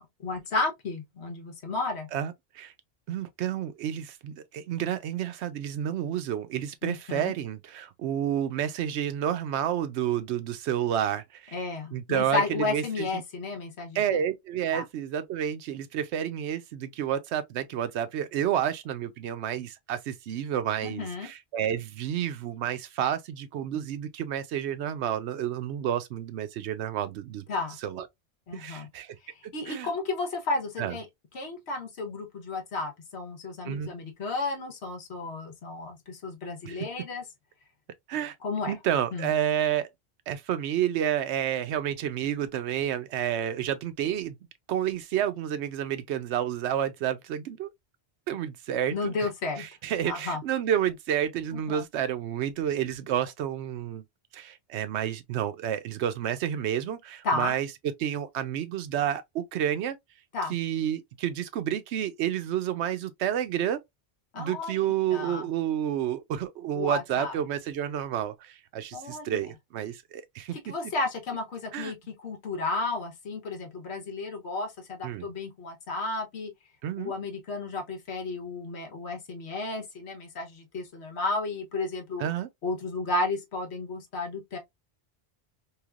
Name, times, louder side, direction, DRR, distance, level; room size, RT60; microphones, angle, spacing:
voice 1, 0.0-2.1 6.8-7.3 11.5-14.0 14.7-14.8 20.8-21.3 27.5-27.8 28.5-28.9 29.2-31.1 31.3-37.2 38.4-38.7 39.1-39.3 48.9-49.7 50.0-50.4 51.5-51.8 57.2-57.6 60.3-60.5 64.3-64.8 65.1-65.4 66.7-67.4 68.9-69.5 70.5-76.5 77.0-82.2 82.6-84.6, left 3 dB, 75° left, 1.2 m, -33 dB
voice 2, 2.1-2.7 3.1-11.5 11.9-13.1 13.9-27.4 27.8-28.0 28.5-29.2 29.7-29.9 30.8-30.9 33.6-33.9 36.6-36.8 38.1-38.3 38.7-39.9 40.3-44.4 44.7-47.7 48.3-49.1 49.8-54.0 54.3-57.7 58.0-60.0 60.5-63.8 64.4-70.6 71.7-71.9 75.0-75.3 76.8-77.1 82.2-82.5, right 10 dB, 85° right, 0.9 m, -30 dB
3.2 x 2.7 x 2.3 m
omnidirectional pair, 1.1 m